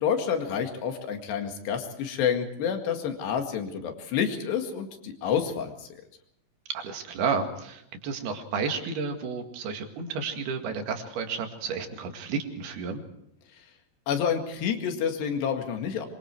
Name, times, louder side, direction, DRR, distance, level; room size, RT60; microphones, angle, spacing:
voice 1, 0.0-5.9 14.1-16.1, left 7 dB, 85° left, 5 dB, 4.2 m, -28 dB
voice 2, 6.7-13.0, right 5 dB, 70° right, 5 dB, 4.0 m, -31 dB
25.0 x 24.0 x 4.7 m, 0.74 s
omnidirectional pair, 4.7 m